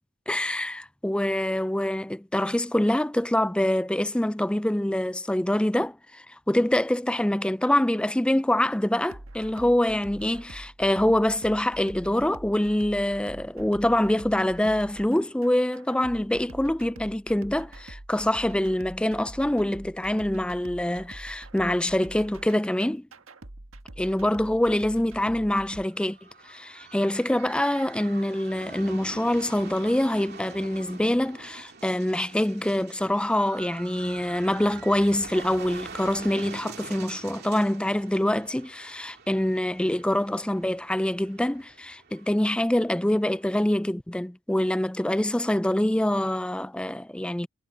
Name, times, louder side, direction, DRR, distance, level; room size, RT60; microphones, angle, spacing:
voice 1, 0.3-23.1 24.0-26.2 26.4-47.5, left 1 dB, 5° left, 0.3 m, -25 dB
sound 1, 9.1-25.8, right 1 dB, 90° right, 1.5 m, -45 dB
sound 2, 25.8-43.5, right 4 dB, 50° right, 3.0 m, -45 dB
head